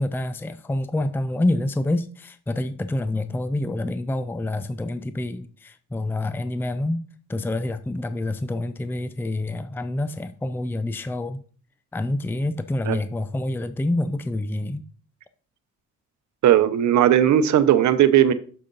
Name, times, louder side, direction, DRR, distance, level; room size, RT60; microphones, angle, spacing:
voice 1, 0.0-7.0 7.3-11.4 11.9-14.8, left 1 dB, 5° left, 0.5 m, -27 dB
voice 2, 16.4-18.3, right 11 dB, 70° right, 0.8 m, -17 dB
6.8 x 6.6 x 3.9 m
cardioid pair, 90°, 30 cm